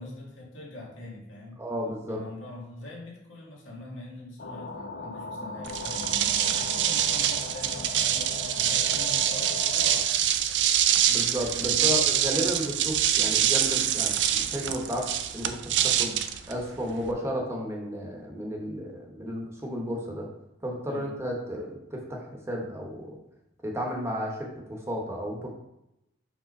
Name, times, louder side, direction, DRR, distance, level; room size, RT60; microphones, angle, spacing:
voice 1, 0.0-1.6 2.1-10.1 10.4-10.5 11.6-12.1 20.9-21.1, left 2 dB, 80° left, -3 dB, 1.9 m, -43 dB
voice 2, 1.6-2.2 11.1-16.2 16.5-20.3 20.6-23.2 23.6-25.5, equal, 15° right, 0 dB, 0.9 m, -33 dB
sound 1, 4.4-10.1, left 3 dB, 55° left, 0.5 m, -38 dB
sound 2, 5.6-17.1, right 10 dB, 65° right, 0.4 m, -25 dB
5.0 x 3.6 x 5.2 m, 0.84 s
head